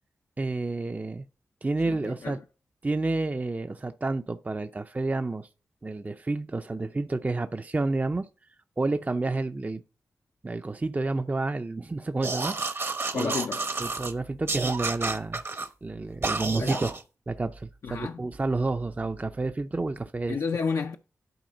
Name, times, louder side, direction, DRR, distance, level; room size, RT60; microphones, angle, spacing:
voice 1, 0.4-1.3 1.6-2.4 2.8-5.5 5.8-8.3 8.8-9.8 10.4-12.8 13.1-13.3 13.8-15.4 15.8-17.0 17.3-20.4, right 3 dB, 30° right, 0.5 m, -30 dB
voice 2, 1.9-2.4 13.1-13.6 16.6-16.9 17.8-18.2 20.3-21.0, left 5 dB, 70° left, 0.5 m, -31 dB
sound 1, 12.2-14.1 14.5-15.7 16.2-17.0, right 3 dB, 45° right, 0.9 m, -30 dB
11.0 x 4.2 x 3.9 m
cardioid pair, 50°, 6 cm